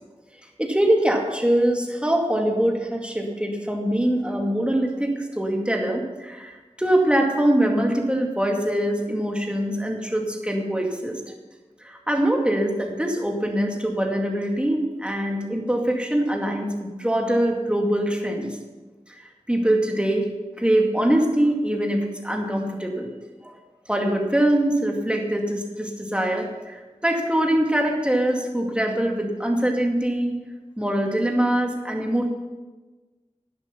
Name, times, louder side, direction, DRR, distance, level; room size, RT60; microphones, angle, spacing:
voice 1, 0.6-11.2 11.8-18.5 19.5-20.3 20.6-23.1 23.4-23.5 23.9-30.3 30.8-32.3, right 1 dB, 10° right, 1 dB, 2.3 m, -23 dB
11.0 x 11.0 x 5.8 m, 1.3 s
wide cardioid pair, 55°, 12 cm